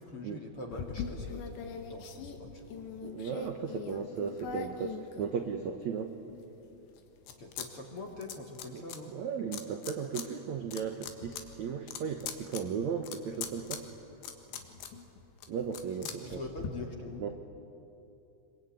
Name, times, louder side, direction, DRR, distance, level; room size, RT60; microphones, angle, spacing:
voice 1, 0.0-2.9 7.4-9.2 15.9-17.3, left 2 dB, 40° left, 1 dB, 2.3 m, -44 dB
sound 1, 0.7-5.8 6.3-7.7 7.9-9.0 9.5-10.3 10.6-16.7, left 7 dB, 85° left, 3.9 m, -42 dB
voice 2, 3.0-6.1 8.7-8.8 9.1-13.8 15.5-16.4 17.2-17.3, right 6 dB, 75° right, 5 dB, 1.7 m, -36 dB
26.0 x 23.5 x 9.3 m, 2.8 s
omnidirectional pair, 5.0 m